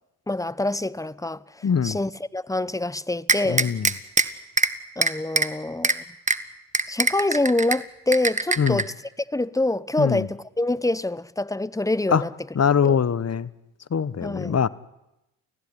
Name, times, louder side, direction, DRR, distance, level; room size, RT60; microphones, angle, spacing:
voice 1, 0.3-3.7 5.0-6.0 6.9-8.9 9.3-12.3 12.8-13.0 14.2-14.6, left 2 dB, 10° left, 1.0 m, -26 dB
voice 2, 1.6-2.0 3.5-3.9 8.6-8.8 10.0-10.3 12.1-12.2 12.5-13.5 13.9-14.7, left 7 dB, 40° left, 1.3 m, -22 dB
sound 1, 3.3-4.2 4.6-4.7 5.0-5.5 5.8-5.9 6.3-6.4 6.7-7.8 8.1-8.8, right 3 dB, 20° right, 1.7 m, -21 dB
30.0 x 16.0 x 10.0 m
supercardioid pair, 55°, 40 cm